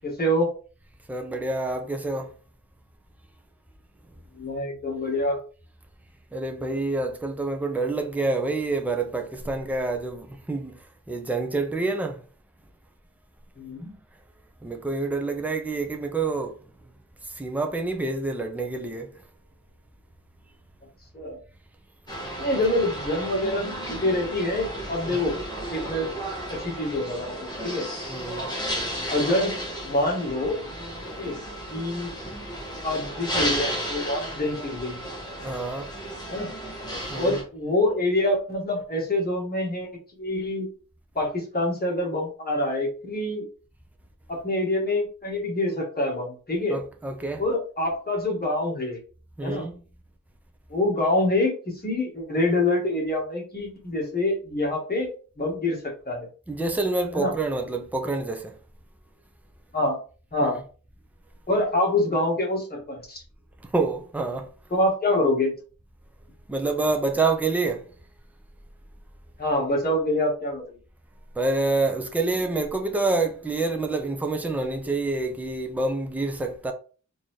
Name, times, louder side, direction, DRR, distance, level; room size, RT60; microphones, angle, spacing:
voice 1, 0.0-0.5 4.4-5.4 13.6-13.9 21.1-21.4 22.4-25.4 25.7-26.1 26.5-27.9 29.1-29.6 29.8-30.6 31.2-31.4 31.7-32.1 32.8-35.0 36.3-36.5 37.1-39.9 40.2-40.7 41.1-43.5 44.3-46.8 47.4-49.0 49.4-49.6 50.7-55.1 55.4-55.8 56.0-56.3 57.1-57.3 59.7-60.0 60.3-60.6 61.5-63.2 64.7-65.5 69.4-70.8, left 1 dB, 30° left, 1.3 m, -26 dB
voice 2, 1.1-2.3 6.3-10.8 11.1-12.2 14.6-16.6 17.3-19.1 25.1-25.2 28.1-28.5 35.4-35.9 37.1-37.4 46.7-47.4 49.4-49.8 56.5-58.6 60.4-60.6 63.7-64.5 66.5-67.8 71.4-76.7, right 3 dB, 5° right, 0.5 m, -27 dB
sound 1, 22.1-37.4, equal, 15° left, 1.2 m, -33 dB
3.9 x 2.7 x 3.1 m
wide cardioid pair, 130°, 31 cm